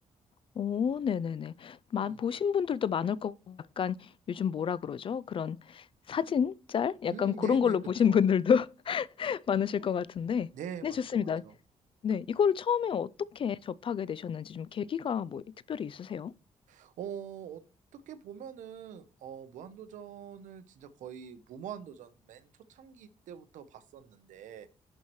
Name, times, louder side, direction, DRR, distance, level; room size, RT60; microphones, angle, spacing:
voice 1, 0.6-10.5 10.8-11.4 12.0-16.3, left 7 dB, 45° left, 0.4 m, -30 dB
voice 2, 7.1-8.2 10.5-11.5 16.7-17.6 17.9-24.7, right 8 dB, 85° right, 0.9 m, -44 dB
11.0 x 4.4 x 3.1 m
cardioid pair, 90°, 13 cm